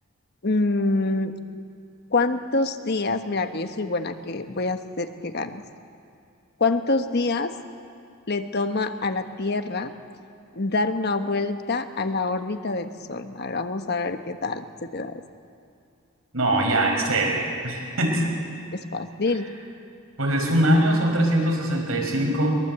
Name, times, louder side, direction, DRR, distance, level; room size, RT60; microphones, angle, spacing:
voice 1, 0.4-1.3 2.1-5.6 6.6-7.5 8.3-9.9 10.5-14.7 14.9-15.2 18.7-19.5, left 3 dB, 50° left, 8 dB, 1.2 m, -26 dB
voice 2, 16.3-18.2 20.2-22.6, right 1 dB, 85° right, 1 dB, 5.6 m, -22 dB
22.5 x 22.5 x 8.0 m, 2.5 s
head